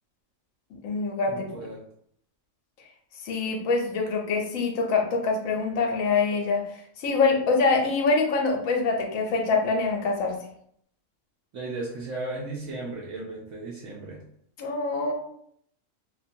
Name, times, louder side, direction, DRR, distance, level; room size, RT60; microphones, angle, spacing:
voice 1, 0.7-1.5 3.2-10.4 14.6-15.1, left 4 dB, 80° left, 1 dB, 1.0 m, -25 dB
voice 2, 1.3-1.8 11.5-14.2, right 2 dB, 70° right, -4 dB, 0.9 m, -35 dB
2.5 x 2.2 x 2.6 m, 0.68 s
omnidirectional pair, 1.4 m